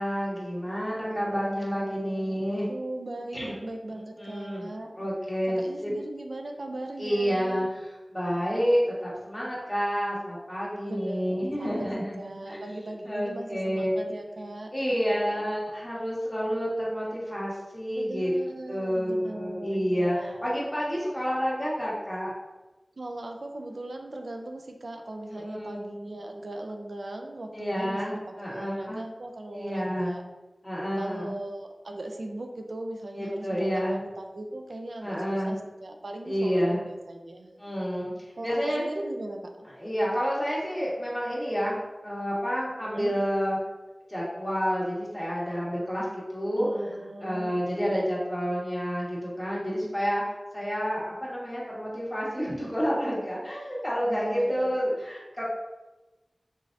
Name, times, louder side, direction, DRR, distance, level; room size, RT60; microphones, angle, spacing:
voice 1, 0.0-2.7 3.3-3.5 4.2-4.7 5.0-5.9 7.0-12.7 13.0-14.1 14.7-18.3 18.7-22.3 25.3-25.8 27.5-29.0 29.5-30.1 30.6-31.3 33.1-34.0 35.0-35.5 36.2-36.8 37.6-38.8 39.8-41.8 42.0-43.6 44.1-46.7 47.2-50.2 50.5-55.4, equal, 15° left, -6 dB, 1.5 m, -29 dB
voice 2, 1.0-5.1 5.5-7.7 10.8-14.7 15.1-15.5 17.9-20.5 23.0-30.2 31.0-37.5 38.4-39.5 42.9-43.1 46.6-47.8 52.4-52.7 54.0-54.7, right 1 dB, 80° right, 3 dB, 0.4 m, -39 dB
3.6 x 3.2 x 2.6 m, 1.1 s
wide cardioid pair, 40°, 0 cm